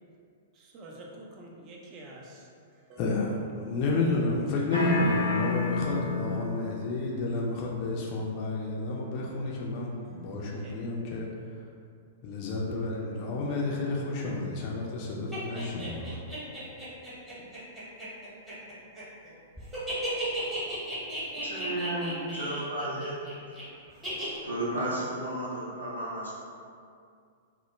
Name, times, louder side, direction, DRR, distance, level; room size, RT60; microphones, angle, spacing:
voice 1, 0.5-2.5 2.8-3.0 10.0-10.8 13.8-14.3, right 1 dB, 30° right, 0.4 m, -49 dB
voice 2, 3.0-11.3 12.2-16.2 21.4-22.3, left 3 dB, 40° left, 0.3 m, -31 dB
sound 1, 4.7-6.7, left 3 dB, 85° left, 0.6 m, -28 dB
sound 2, 15.3-19.3 19.6-23.6 24.0-24.4, right 1 dB, 10° right, 0.9 m, -35 dB
voice 3, 21.4-23.1 24.4-26.3, right 1 dB, 90° right, 0.7 m, -33 dB
2.1 x 2.0 x 3.0 m
figure-of-eight pair, 105°, 0 cm